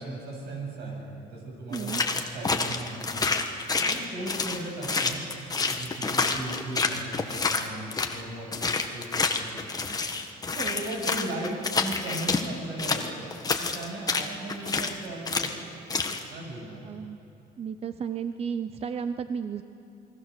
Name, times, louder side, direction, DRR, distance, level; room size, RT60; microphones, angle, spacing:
voice 1, 0.0-3.3 3.7-5.3 5.7-9.7 10.5-13.2 13.6-15.6 16.3-16.8, right 1 dB, 75° right, -1 dB, 7.8 m, -37 dB
sound 1, 1.7-8.2 8.5-12.5 12.8-15.0 15.3-15.6 15.9-16.2, left 4 dB, 20° left, 1.5 m, -28 dB
voice 2, 1.7-2.0 10.6-10.8 16.8-17.2 17.6-19.6, right 7 dB, 35° right, 10 dB, 0.7 m, -33 dB
28.5 x 21.0 x 6.8 m, 2.8 s
cardioid pair, 110°, 17 cm